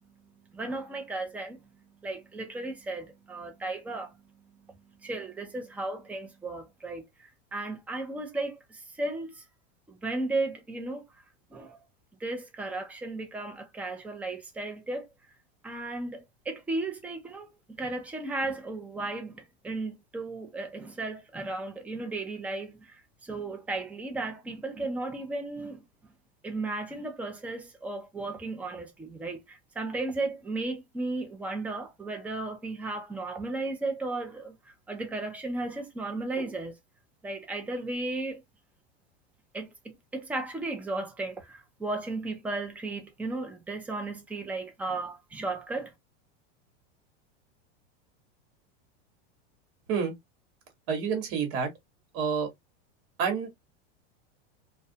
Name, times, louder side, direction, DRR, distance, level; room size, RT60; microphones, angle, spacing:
voice 1, 0.5-1.6 2.0-4.1 5.0-9.4 9.9-11.0 11.5-11.8 12.2-15.0 15.6-25.8 26.4-34.6 34.9-36.7 37.2-38.4 39.5-45.9, right 2 dB, 5° right, 0.4 m, -35 dB
voice 2, 50.9-51.7 52.1-52.5 53.2-53.5, right 6 dB, 50° right, 1.1 m, -28 dB
2.4 x 2.2 x 2.5 m
supercardioid pair, 135°, 32 cm